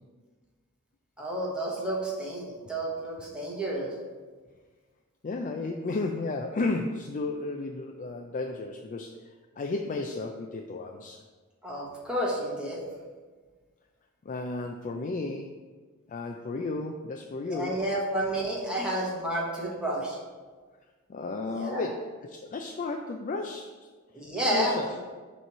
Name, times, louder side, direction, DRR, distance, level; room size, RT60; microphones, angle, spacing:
voice 1, 1.2-3.9 11.6-12.8 17.5-20.2 21.5-21.9 24.1-24.7, right 1 dB, 5° right, -5 dB, 1.2 m, -30 dB
voice 2, 5.2-9.2 9.6-11.2 14.3-15.5 16.1-17.8 21.1-23.7 24.4-25.0, left 3 dB, 35° left, 3 dB, 0.4 m, -33 dB
6.7 x 3.1 x 5.9 m, 1.4 s
head